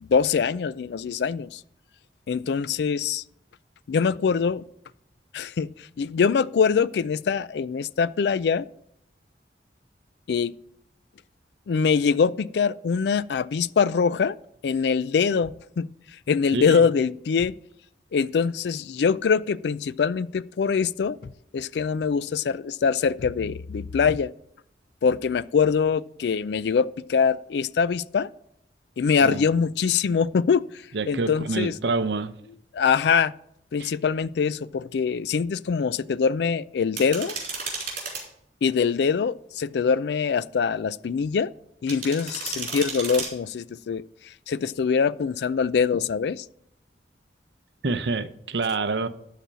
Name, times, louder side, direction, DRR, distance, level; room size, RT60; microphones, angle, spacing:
voice 1, 0.0-1.6 2.3-3.2 3.9-4.6 5.3-5.7 6.0-8.7 10.3-10.5 11.7-14.3 14.6-15.9 16.3-17.5 18.1-24.3 25.0-28.3 29.0-30.6 31.1-31.7 32.7-33.3 33.7-37.3 38.6-41.5 41.8-44.0 44.5-46.4, left 6 dB, 70° left, 0.3 m, -23 dB
voice 2, 16.5-16.8 29.2-29.5 30.9-32.3 33.8-33.9 47.8-49.1, right 3 dB, 75° right, 0.7 m, -27 dB
sound 1, 37.0-38.2 41.9-43.3, right 4 dB, 45° right, 3.6 m, -33 dB
12.5 x 4.2 x 7.4 m
head